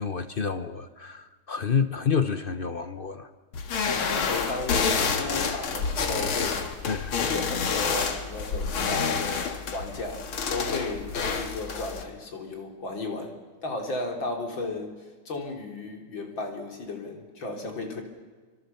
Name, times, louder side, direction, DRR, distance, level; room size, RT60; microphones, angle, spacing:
voice 1, 0.0-3.3 6.9-7.3, left 6 dB, 50° left, 10 dB, 0.6 m, -29 dB
sound 1, 3.5-12.0, left 5 dB, 85° left, 2.7 m, -28 dB
voice 2, 3.9-6.9 7.2-18.0, left 2 dB, 65° left, 2 dB, 4.0 m, -35 dB
25.5 x 25.0 x 7.0 m, 1.4 s
omnidirectional pair, 2.2 m